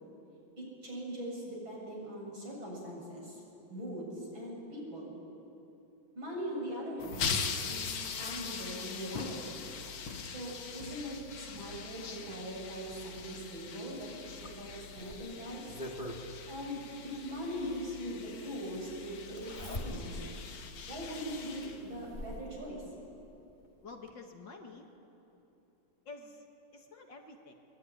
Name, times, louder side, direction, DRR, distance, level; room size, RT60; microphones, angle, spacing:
voice 1, 0.6-3.4 3.7-5.2 6.2-7.9 8.2-9.6 10.3-15.8 16.5-20.2 20.9-22.8, equal, 65° right, -2 dB, 7.9 m, -41 dB
sound 1, 7.0-22.4, left 5 dB, 75° left, 2.3 m, -41 dB
Zipper (clothing), 14.4-16.2 17.6-17.7 19.4-20.3 20.8-20.9 21.6-22.4 23.6-23.7 24.1-24.2, left 1 dB, 20° left, 2.2 m, -42 dB
voice 2, 23.8-24.9 26.1-26.5 26.7-27.5, left 3 dB, 55° left, 3 dB, 2.6 m, -49 dB
23.0 x 22.5 x 9.9 m, 3.0 s
omnidirectional pair, 2.4 m